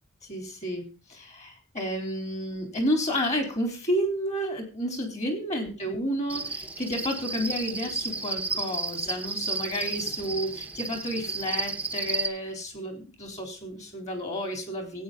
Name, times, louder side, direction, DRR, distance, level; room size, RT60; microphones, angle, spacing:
voice 1, 0.3-15.0, equal, 35° left, 4 dB, 4.0 m, -31 dB
Cricket, 6.3-12.3, right 3 dB, 5° right, 1.0 m, -32 dB
16.0 x 8.9 x 4.0 m, 0.32 s
head